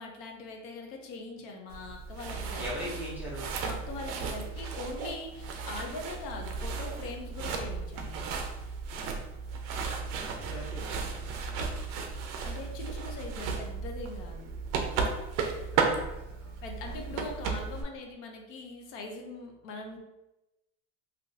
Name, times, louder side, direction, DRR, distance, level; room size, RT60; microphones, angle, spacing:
voice 1, 0.0-3.0 3.6-8.3 12.4-14.5 16.6-20.0, left 3 dB, 50° left, 2 dB, 0.6 m, -42 dB
sound 1, 1.7-17.8, right 5 dB, 55° right, 0.5 m, -35 dB
voice 2, 2.6-3.6 10.2-11.3 15.6-17.1, equal, 5° right, -9 dB, 0.4 m, -42 dB
3.3 x 2.7 x 2.6 m, 0.97 s
cardioid pair, 175°, 31 cm